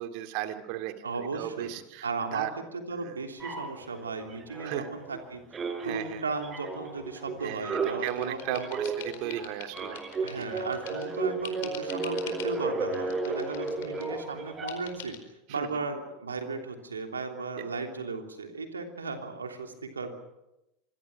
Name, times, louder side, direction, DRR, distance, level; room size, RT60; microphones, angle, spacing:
voice 1, 0.0-2.5 3.0-3.1 4.6-4.9 5.8-6.2 7.4-10.0 10.4-10.5 15.6-15.7 17.6-17.7, right 13 dB, 55° right, 7 dB, 2.3 m, -36 dB
voice 2, 1.0-1.8 2.0-5.4 5.8-8.8 10.2-15.2 15.5-20.2, right 4 dB, 85° right, 4 dB, 3.2 m, -36 dB
sound 1, 3.4-5.2 5.5-15.0, right 4 dB, 25° right, 4.1 m, -34 dB
sound 2, 7.4-11.1 11.4-12.6 12.9-14.1 14.7-15.2, left 9 dB, 65° left, 4.6 m, -45 dB
26.0 x 22.5 x 6.2 m, 0.91 s
figure-of-eight pair, 80°, 0 cm